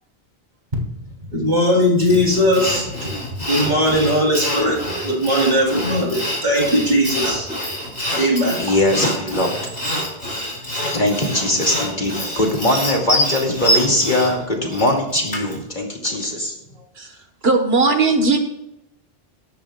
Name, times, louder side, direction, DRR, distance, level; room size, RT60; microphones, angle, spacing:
voice 1, 1.3-2.9 3.4-7.5 8.1-8.6, equal, 45° right, -2 dB, 3.7 m, -19 dB
Sawing, 2.0-15.6, equal, 75° left, 4.3 m, -26 dB
voice 2, 8.6-9.6 10.9-16.9, left 1 dB, 45° left, 1 dB, 2.6 m, -21 dB
voice 3, 17.4-18.4, right 3 dB, 75° right, 5 dB, 1.7 m, -17 dB
17.5 x 13.5 x 2.4 m, 0.85 s
omnidirectional pair, 1.1 m